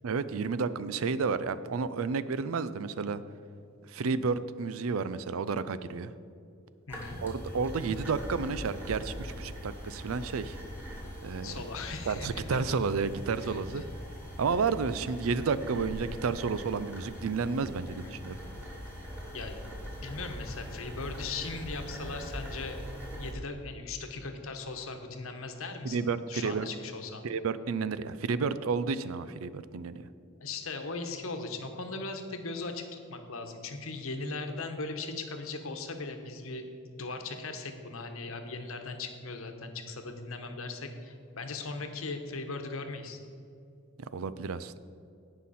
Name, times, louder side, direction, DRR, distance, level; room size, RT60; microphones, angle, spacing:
voice 1, 0.0-3.2 3.9-6.1 7.2-10.6 11.2-11.5 12.1-13.8 14.4-18.3 25.8-26.7 27.2-30.0 44.1-44.8, right 5 dB, 75° right, 15 dB, 0.5 m, -31 dB
voice 2, 6.9-7.2 11.4-12.6 13.4-13.8 17.9-18.2 19.3-19.6 20.0-22.8 23.1-27.2 30.4-36.6 36.9-43.2, left 3 dB, 70° left, 6 dB, 1.1 m, -39 dB
sound 1, 6.9-23.3, equal, 10° right, 2.6 m, -42 dB
17.0 x 5.7 x 4.2 m, 2.5 s
head